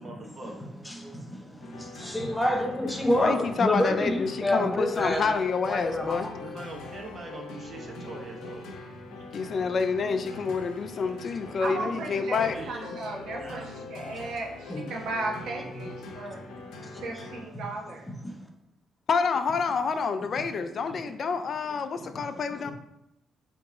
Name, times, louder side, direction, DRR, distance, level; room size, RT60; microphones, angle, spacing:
voice 1, 0.0-0.8 1.2-1.3 6.4-8.7 11.7-13.0 13.4-13.7, right 2 dB, 40° right, 1 dB, 0.9 m, -42 dB
voice 2, 0.8-5.4 5.7-6.4 9.1-9.4 14.7-14.8 16.1-16.4 16.7-17.2 17.5-17.6 18.1-18.5 22.0-22.4, left 1 dB, 5° left, 2 dB, 0.6 m, -29 dB
sound 1, 1.6-17.4, left 3 dB, 90° left, 0.6 m, -42 dB
voice 3, 3.2-6.3 9.3-12.6 19.1-22.7, left 5 dB, 50° left, 9 dB, 0.3 m, -28 dB
voice 4, 11.6-16.4 17.0-18.1, right 2 dB, 80° right, -2 dB, 1.0 m, -35 dB
3.5 x 2.9 x 3.6 m, 0.85 s
cardioid pair, 90°, 0 cm